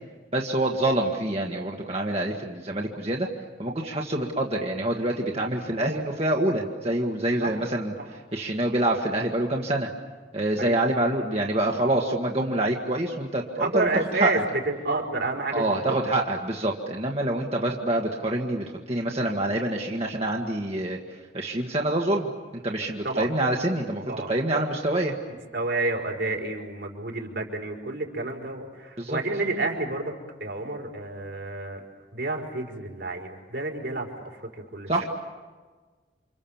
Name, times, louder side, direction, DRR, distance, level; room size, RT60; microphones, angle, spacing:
voice 1, 0.3-3.3 3.6-9.9 10.3-14.3 15.5-25.1 29.0-29.2 34.9-35.0, right 1 dB, 35° right, 0 dB, 1.7 m, -26 dB
voice 2, 13.6-14.4 14.8-16.2 23.0-23.3 24.1-24.3 25.5-30.1 30.4-31.8 32.1-34.9, right 2 dB, 75° right, 1 dB, 4.9 m, -30 dB
29.5 x 26.5 x 7.3 m, 1.4 s
head